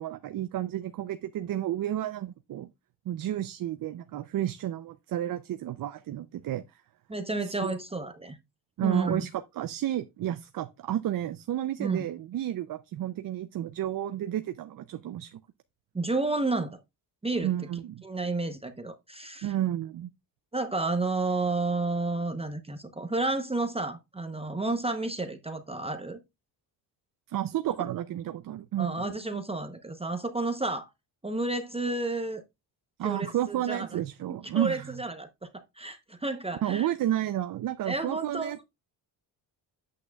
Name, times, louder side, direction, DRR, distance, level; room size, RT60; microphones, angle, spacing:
voice 1, 0.0-2.7 3.1-6.8 7.5-7.7 8.8-15.4 17.4-18.0 19.4-20.1 27.3-29.0 33.0-35.0 36.6-38.6, right 12 dB, 55° right, 0.6 m, -31 dB
voice 2, 7.1-8.4 8.8-9.2 11.8-12.1 15.9-16.8 17.2-17.5 18.0-19.5 20.5-26.2 27.8-27.9 28.8-30.9 31.2-32.4 33.0-34.0 34.5-35.5 35.8-36.9 37.8-38.5, right 2 dB, 15° right, 0.8 m, -31 dB
8.5 x 8.2 x 2.3 m
cardioid pair, 90°, 42 cm